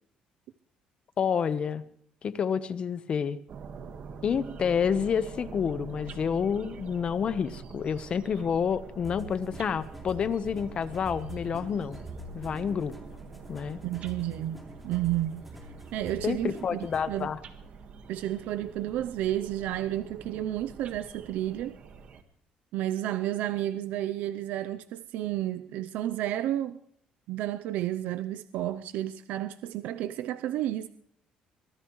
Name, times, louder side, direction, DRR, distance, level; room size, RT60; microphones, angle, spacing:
voice 1, 1.2-1.8 2.2-3.4 4.2-12.0 12.3-12.9 13.5-13.8 16.2-17.4, left 7 dB, 40° left, 1.0 m, -29 dB
sound 1, 3.5-22.2, right 5 dB, 55° right, 1.6 m, -46 dB
sound 2, 9.0-17.2, equal, ahead, 2.9 m, -45 dB
voice 2, 13.8-14.6 14.8-15.5 15.9-17.3 18.1-21.8 22.7-26.8 27.3-30.9, right 13 dB, 80° right, 0.6 m, -31 dB
24.0 x 16.5 x 3.2 m
cardioid pair, 125°, 3 cm